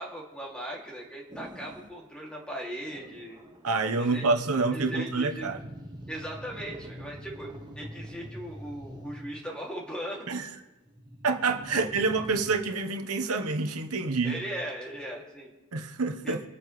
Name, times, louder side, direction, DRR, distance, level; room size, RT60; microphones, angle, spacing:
voice 1, 0.0-3.4 4.0-4.2 4.7-5.5 6.1-10.5 14.2-15.5 16.2-16.4, right 1 dB, 5° left, 2.6 m, -38 dB
sound 1, 1.3-2.0 2.9-3.8 4.6-9.5 10.8-12.6, equal, 20° right, 1.2 m, -45 dB
voice 2, 3.6-5.6 10.3-10.5 11.2-14.4 15.7-16.4, right 3 dB, 85° right, 1.1 m, -27 dB
26.0 x 8.9 x 3.3 m
head